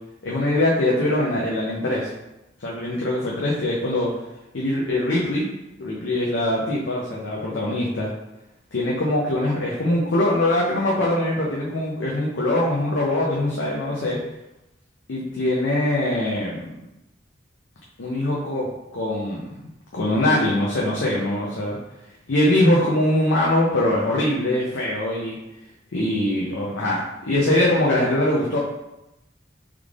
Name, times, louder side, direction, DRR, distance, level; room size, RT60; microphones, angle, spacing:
voice 1, 0.2-2.1 2.6-4.1 4.5-5.5 5.8-8.1 8.7-14.2 15.1-16.7 18.0-19.5 19.9-21.8 22.3-25.4 25.9-28.6, left 1 dB, 90° left, -4 dB, 0.6 m, -22 dB
3.5 x 3.2 x 2.4 m, 0.93 s
head